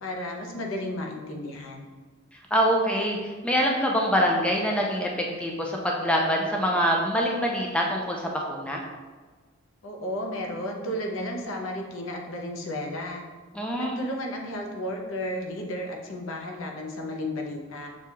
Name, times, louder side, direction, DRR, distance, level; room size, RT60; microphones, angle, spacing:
voice 1, 0.0-1.9 9.8-13.2 13.8-17.9, left 1 dB, 70° left, 1 dB, 0.6 m, -33 dB
voice 2, 2.5-8.8 13.5-14.0, equal, 5° left, -1 dB, 0.3 m, -25 dB
6.1 x 2.3 x 2.8 m, 1.4 s
head